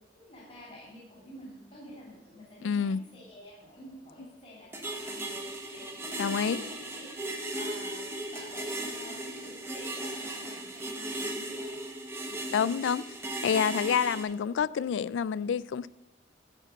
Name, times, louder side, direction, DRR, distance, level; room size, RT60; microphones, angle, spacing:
voice 1, 0.1-7.1 7.5-11.8 12.2-12.4, left 1 dB, 40° left, 3.2 m, -49 dB
voice 2, 2.6-3.0 6.2-6.6 12.5-13.0 13.4-15.9, left 7 dB, 85° left, 0.3 m, -28 dB
sound 1, 4.7-14.2, right 1 dB, 15° right, 1.1 m, -37 dB
11.5 x 5.1 x 7.5 m
head